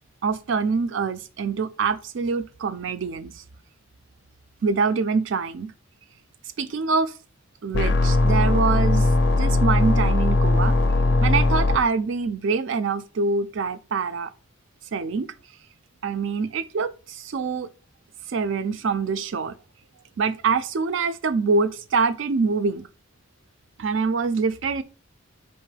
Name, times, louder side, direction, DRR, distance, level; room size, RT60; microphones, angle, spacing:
voice 1, 0.2-3.4 4.6-5.7 6.6-7.1 7.6-9.1 9.4-10.8 11.2-14.3 14.9-15.3 16.0-17.7 18.3-19.6 20.2-22.9 23.8-24.8, right 4 dB, 65° right, 0.4 m, -25 dB
sound 1, 7.7-11.8, left 2 dB, 55° left, 0.4 m, -19 dB
4.4 x 3.0 x 3.2 m
head